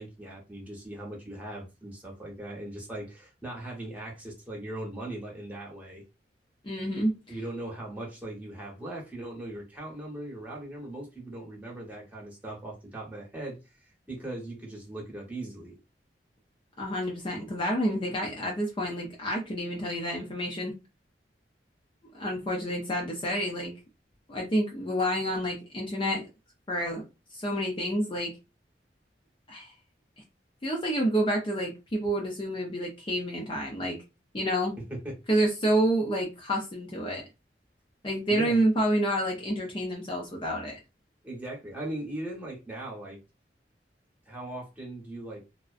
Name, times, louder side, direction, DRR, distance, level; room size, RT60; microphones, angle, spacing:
voice 1, 0.0-6.0 7.3-13.6 14.1-15.7 34.9-35.2 38.3-38.6 41.2-43.2 44.3-45.4, right 1 dB, 10° right, 0.9 m, -39 dB
voice 2, 6.6-7.3 16.8-20.7 22.1-23.7 24.3-26.3 26.7-27.0 27.3-28.3 29.5-29.7 30.6-34.0 34.3-34.7 35.3-37.2 38.0-40.8, right 1 dB, 30° left, 0.5 m, -28 dB
2.4 x 2.1 x 2.4 m
head